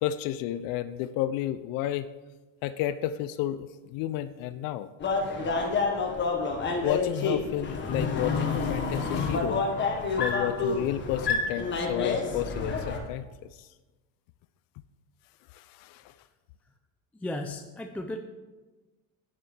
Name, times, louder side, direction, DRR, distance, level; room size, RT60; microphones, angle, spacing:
voice 1, 0.0-2.1 2.6-4.9 6.8-9.6 10.2-13.3 13.5-13.7 15.5-16.1, left 12 dB, 60° left, 13 dB, 0.5 m, -32 dB
sound 1, 5.0-13.0, left 4 dB, 30° left, 1.4 m, -28 dB
voice 2, 17.2-18.2, left 1 dB, 5° left, 4 dB, 0.3 m, -35 dB
12.0 x 9.4 x 3.3 m, 1.2 s
cardioid pair, 130°, 39 cm